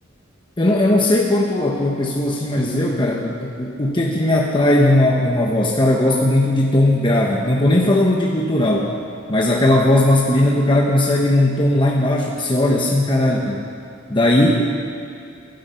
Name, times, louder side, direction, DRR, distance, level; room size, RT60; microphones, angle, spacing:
voice 1, 0.6-9.0 9.3-13.7 14.1-14.7, left 1 dB, 25° left, -1 dB, 1.1 m, -17 dB
21.0 x 12.0 x 5.7 m, 2.4 s
head